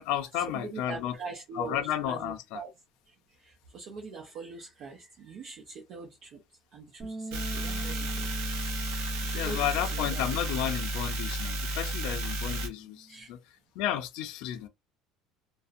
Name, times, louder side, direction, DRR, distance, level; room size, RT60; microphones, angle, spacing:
voice 1, 0.0-1.2 1.5-2.6 9.3-13.4 13.8-14.7, left 11 dB, 70° left, 0.4 m, -32 dB
voice 2, 0.5-1.8 2.1-2.7 3.4-6.4 6.7-8.3 9.2-10.2 13.1-13.3, right 5 dB, 50° right, 0.5 m, -43 dB
Bass guitar, 7.0-13.2, right 2 dB, 10° right, 1.2 m, -44 dB
sound 1, 7.3-12.7, right 1 dB, 85° right, 0.8 m, -32 dB
2.6 x 2.0 x 2.4 m
cardioid pair, 145°, 0 cm